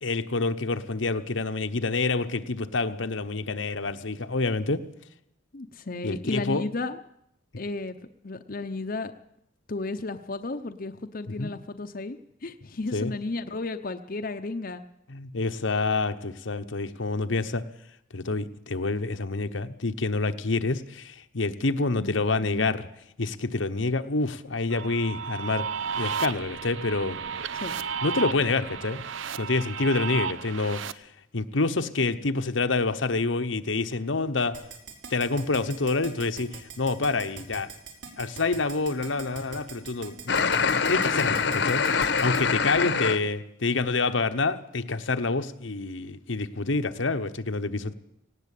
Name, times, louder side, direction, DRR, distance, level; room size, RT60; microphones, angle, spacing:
voice 1, 0.0-4.8 6.0-6.6 11.4-11.5 12.9-13.1 15.1-17.6 18.1-22.9 23.2-25.7 26.0-27.2 28.0-29.1 29.4-30.8 31.3-34.6 35.1-37.7 38.2-40.4 40.9-47.9, left 3 dB, 80° left, 1.1 m, -27 dB
voice 2, 5.5-7.0 7.6-8.0 8.2-9.1 9.7-14.9 21.9-22.8 27.5-27.7, left 3 dB, 45° left, 0.8 m, -34 dB
sound 1, 24.7-30.9, right 7 dB, 85° right, 0.8 m, -33 dB
Keyboard (musical), 34.5-42.4, right 5 dB, 60° right, 4.6 m, -41 dB
sound 2, 40.3-43.2, left 5 dB, 65° left, 1.1 m, -24 dB
18.0 x 17.5 x 8.5 m
head